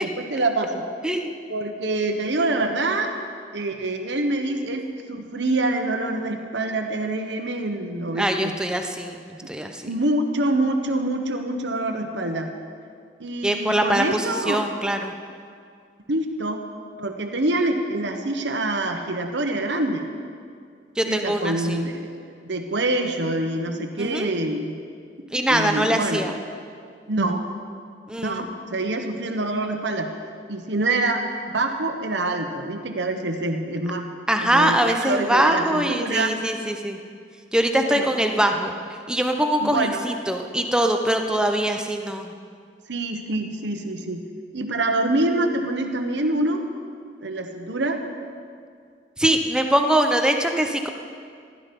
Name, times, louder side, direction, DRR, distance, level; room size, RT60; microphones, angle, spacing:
voice 1, 0.0-0.8 1.5-3.1 3.5-8.5 9.4-9.5 9.8-12.5 13.2-14.7 16.1-16.6 17.0-20.1 21.1-24.8 25.5-26.3 27.1-27.4 28.2-30.1 30.5-31.2 31.5-34.1 34.4-36.4 37.8-38.1 39.6-40.1 41.3-41.4 42.9-44.2 44.5-46.7 47.2-48.0, right 2 dB, 75° right, 4 dB, 1.2 m, -26 dB
voice 2, 8.1-9.8 13.4-15.1 21.0-21.8 24.0-24.3 25.3-26.3 28.1-28.5 34.3-37.0 37.5-38.7 39.1-42.3 49.2-50.9, right 1 dB, 5° right, 4 dB, 0.8 m, -22 dB
15.5 x 12.0 x 5.4 m, 2.2 s
head